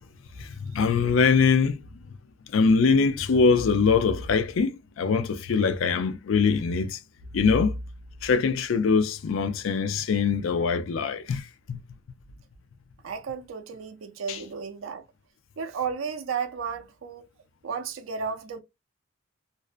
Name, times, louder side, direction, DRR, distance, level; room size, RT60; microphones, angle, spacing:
voice 1, 0.4-1.8 2.5-7.0 7.3-7.8 8.2-11.8 14.3-14.4, left 5 dB, 80° left, 0.4 m, -23 dB
voice 2, 13.0-15.0 15.6-17.3 17.6-18.6, right 6 dB, 85° right, 0.5 m, -33 dB
2.5 x 2.1 x 2.4 m
head